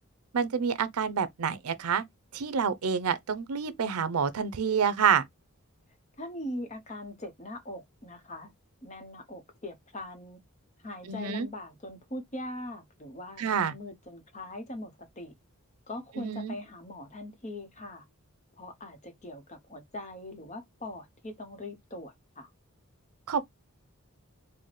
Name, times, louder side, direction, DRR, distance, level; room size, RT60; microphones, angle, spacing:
voice 1, 0.3-2.0 2.3-5.2 11.1-11.5 13.4-13.7 16.2-16.5 23.3-23.4, right 6 dB, 90° right, 0.5 m, -28 dB
voice 2, 6.2-8.5 8.8-10.4 10.8-15.3 15.9-18.1 18.6-22.5, left 1 dB, 30° left, 0.8 m, -41 dB
4.1 x 2.1 x 3.1 m
head